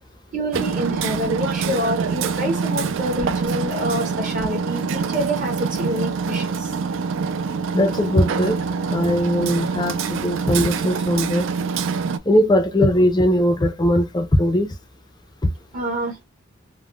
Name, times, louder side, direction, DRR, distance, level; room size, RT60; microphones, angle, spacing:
voice 1, 0.3-6.7 15.7-16.2, equal, 40° right, 0.8 m, -27 dB
Hammer, 0.5-12.2, right 5 dB, 70° right, 0.3 m, -25 dB
voice 2, 7.7-8.6 8.9-11.5 12.3-14.7 15.4-15.5, left 1 dB, 20° left, 0.4 m, -19 dB
3.4 x 2.0 x 2.2 m
head